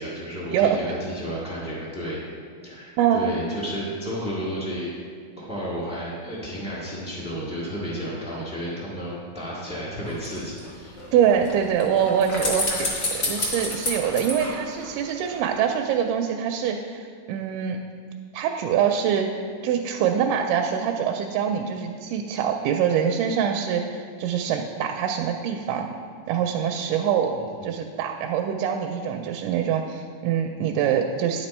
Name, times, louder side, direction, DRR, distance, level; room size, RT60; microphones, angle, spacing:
voice 1, 0.0-2.2 2.6-4.9 5.4-11.0 27.3-27.7, equal, 5° right, -7 dB, 0.6 m, -32 dB
voice 2, 3.0-3.3 11.1-12.9 13.2-17.8 18.3-19.3 19.6-26.0 26.3-27.4 27.6-31.5, right 8 dB, 80° right, 3 dB, 2.0 m, -24 dB
sound 1, 10.0-15.4 15.7-15.8, left 2 dB, 45° left, 1.3 m, -30 dB
10.0 x 6.0 x 4.3 m, 2.1 s
omnidirectional pair, 3.8 m